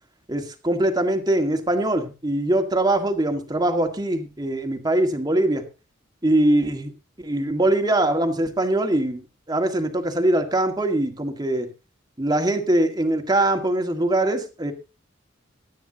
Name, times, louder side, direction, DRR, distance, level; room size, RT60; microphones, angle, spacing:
voice 1, 0.3-5.6 6.2-6.9 7.2-11.7 12.2-14.7, right 1 dB, 20° right, 5 dB, 1.8 m, -22 dB
18.0 x 12.5 x 2.9 m, 0.31 s
head